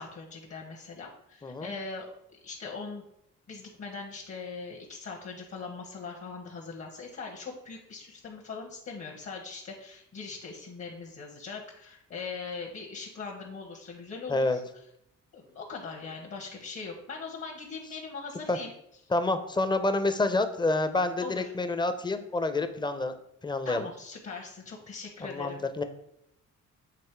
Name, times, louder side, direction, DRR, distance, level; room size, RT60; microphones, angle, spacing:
voice 1, 0.0-2.1 2.4-3.0 3.5-14.6 15.3-18.7 21.2-21.5 23.6-25.6, left 4 dB, 45° left, 0 dB, 1.2 m, -41 dB
voice 2, 1.4-1.7 14.3-14.6 18.5-18.6 19.1-23.1 23.4-23.9 25.2-25.8, left 2 dB, 15° left, 9 dB, 0.6 m, -28 dB
7.6 x 3.1 x 4.5 m, 0.78 s
cardioid pair, 90°, 30 cm